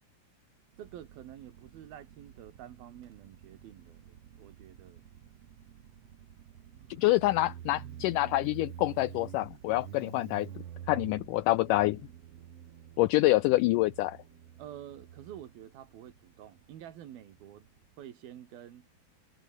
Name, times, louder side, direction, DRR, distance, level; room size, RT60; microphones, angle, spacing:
Motorcycle, 0.7-17.9, right 10 dB, 55° right, 2.0 m, -49 dB
voice 1, 0.8-5.0 14.6-17.7 18.0-18.9, right 11 dB, 80° right, 3.7 m, -48 dB
voice 2, 7.0-10.5 10.9-12.0 13.0-14.2, left 18 dB, 85° left, 1.8 m, -26 dB
omnidirectional pair, 4.3 m